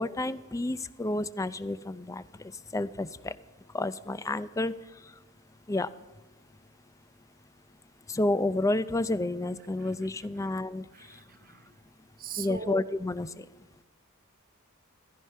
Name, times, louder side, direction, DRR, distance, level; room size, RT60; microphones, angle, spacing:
voice 1, 0.0-3.3 3.7-4.7 5.7-5.9 8.1-11.2 12.4-13.5, left 2 dB, 15° left, 0.4 m, -30 dB
voice 2, 10.9-11.8 12.2-12.8, right 5 dB, 45° right, 0.8 m, -41 dB
16.0 x 14.0 x 5.6 m
head